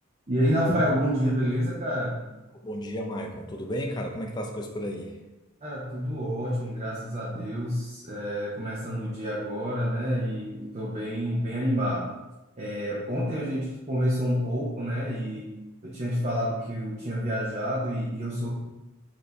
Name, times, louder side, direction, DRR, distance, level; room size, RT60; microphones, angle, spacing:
voice 1, 0.3-2.2 5.6-12.1 12.6-15.5 15.8-18.5, equal, 35° right, -5 dB, 0.6 m, -28 dB
voice 2, 2.6-5.1, equal, 20° left, 1 dB, 0.4 m, -33 dB
4.5 x 2.7 x 3.2 m, 1.0 s
head